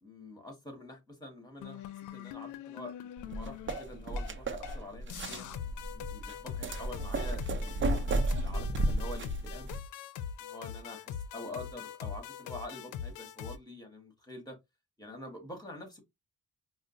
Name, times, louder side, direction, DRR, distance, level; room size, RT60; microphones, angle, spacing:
voice 1, 0.0-5.5 5.9-9.7 10.4-14.6 15.0-16.0, left 1 dB, 15° left, 1.7 m, -46 dB
sound 1, 1.6-4.3 4.6-4.8 5.1-13.6, left 9 dB, 80° left, 0.5 m, -42 dB
sound 2, 3.2-9.8, right 2 dB, 40° right, 0.7 m, -33 dB
4.9 x 2.1 x 2.6 m
cardioid pair, 90°, 30 cm